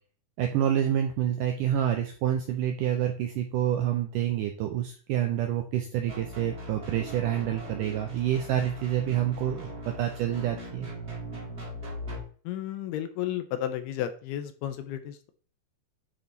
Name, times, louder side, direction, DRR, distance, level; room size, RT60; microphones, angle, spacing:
voice 1, 0.4-10.9, right 11 dB, 80° right, 4 dB, 1.9 m, -28 dB
sound 1, 6.1-12.2, equal, 25° right, 1.5 m, -40 dB
voice 2, 12.5-15.3, left 11 dB, 85° left, 9 dB, 2.7 m, -33 dB
10.0 x 3.6 x 4.0 m, 0.42 s
omnidirectional pair, 4.5 m